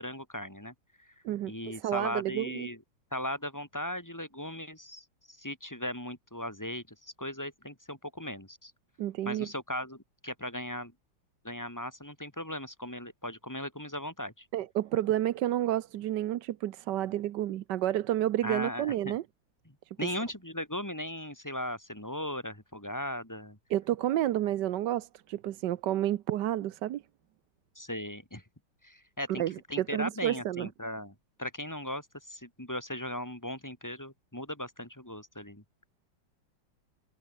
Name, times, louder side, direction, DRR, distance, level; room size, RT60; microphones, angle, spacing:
voice 1, 0.0-1.1 1.4-2.8 3.1-8.7 9.2-10.9 11.4-14.5 18.4-19.2 20.0-23.6 27.7-28.4 28.8-29.4 29.7-35.6, left 1 dB, 10° left, 3.5 m, -38 dB
voice 2, 1.2-2.7 9.0-9.5 14.5-19.2 23.7-27.0 29.3-30.7, right 13 dB, 70° right, 1.3 m, -30 dB
omnidirectional pair, 2.1 m